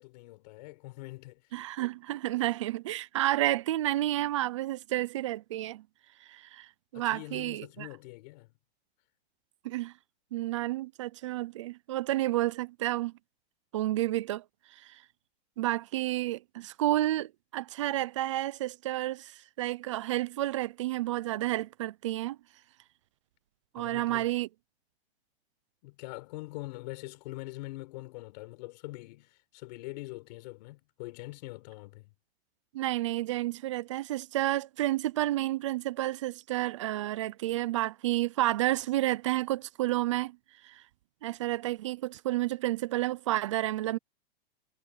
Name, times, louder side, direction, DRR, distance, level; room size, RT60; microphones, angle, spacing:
voice 1, 0.0-1.4 6.9-8.6 23.7-24.3 25.8-32.1, left 21 dB, 40° left, 5.6 m, -43 dB
voice 2, 1.5-5.8 6.3-6.7 6.9-7.9 9.6-9.9 10.3-13.1 13.7-14.4 14.8-15.0 15.6-22.4 23.7-24.5 32.7-40.4 40.6-40.8 41.2-44.0, right 15 dB, 30° right, 0.4 m, -30 dB
supercardioid pair, 165°, 32 cm